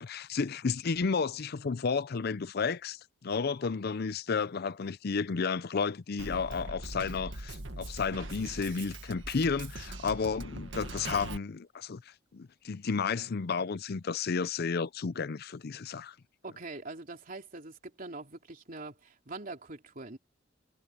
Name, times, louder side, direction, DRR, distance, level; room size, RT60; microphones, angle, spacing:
voice 1, 0.0-16.2, left 5 dB, 55° left, 0.5 m, -32 dB
Drum kit, 6.2-11.4, right 2 dB, 70° right, 1.8 m, -41 dB
voice 2, 16.4-20.2, right 2 dB, 45° right, 3.2 m, -43 dB
head